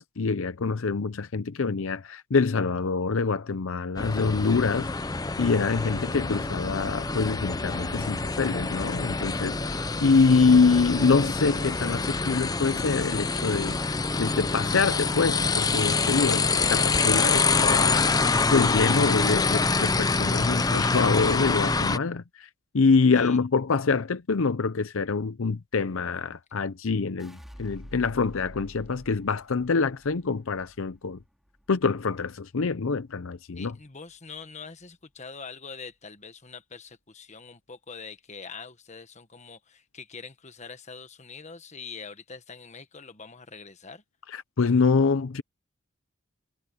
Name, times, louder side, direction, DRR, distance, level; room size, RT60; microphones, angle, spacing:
voice 1, 0.0-4.9 5.4-13.8 14.2-18.1 18.5-22.5 22.7-31.2 31.7-33.7 44.3-45.4, left 4 dB, 70° left, 0.6 m, -25 dB
sound 1, 4.0-22.0, left 4 dB, 20° left, 0.5 m, -26 dB
sound 2, 5.6-11.9, right 3 dB, 30° right, 1.5 m, -49 dB
sound 3, 27.2-33.4 33.7-34.3, equal, ahead, 4.9 m, -49 dB
voice 2, 33.5-44.0, left 5 dB, 35° left, 1.4 m, -43 dB
head